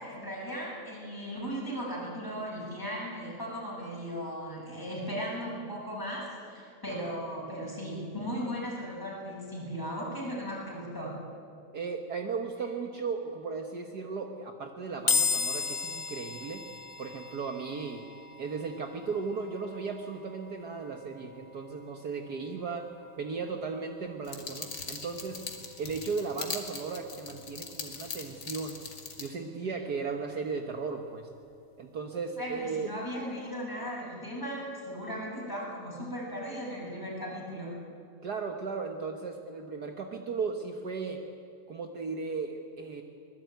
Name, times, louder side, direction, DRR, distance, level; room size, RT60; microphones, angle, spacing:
voice 1, 0.0-11.2 29.7-29.8 32.4-37.8, equal, 5° left, -4 dB, 7.2 m, -37 dB
voice 2, 6.9-7.2 11.7-16.6 17.0-18.0 18.4-22.9 23.2-25.4 25.8-28.8 29.2-31.3 31.8-32.9 38.2-41.2 41.7-43.0, right 4 dB, 60° right, 4 dB, 1.0 m, -36 dB
sound 1, 15.1-28.4, left 5 dB, 65° left, 0.8 m, -38 dB
sound 2, 24.2-29.3, left 4 dB, 35° left, 2.4 m, -41 dB
24.5 x 20.5 x 9.4 m, 2.4 s
omnidirectional pair, 3.6 m